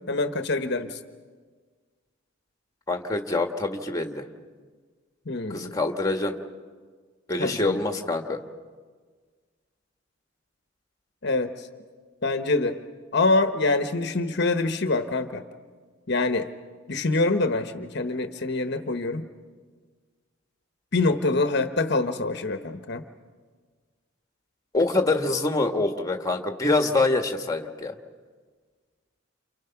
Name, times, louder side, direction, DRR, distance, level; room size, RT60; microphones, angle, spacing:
voice 1, 0.1-1.0 5.3-5.8 7.4-7.8 11.2-11.7 12.2-12.8 13.1-15.4 16.1-16.5 16.9-19.3 20.9-23.0, left 3 dB, 55° left, 8 dB, 1.1 m, -25 dB
voice 2, 2.9-4.3 5.5-6.4 7.3-8.4 24.7-27.9, left 2 dB, 20° left, 4 dB, 1.6 m, -25 dB
29.5 x 28.0 x 5.9 m, 1.5 s
head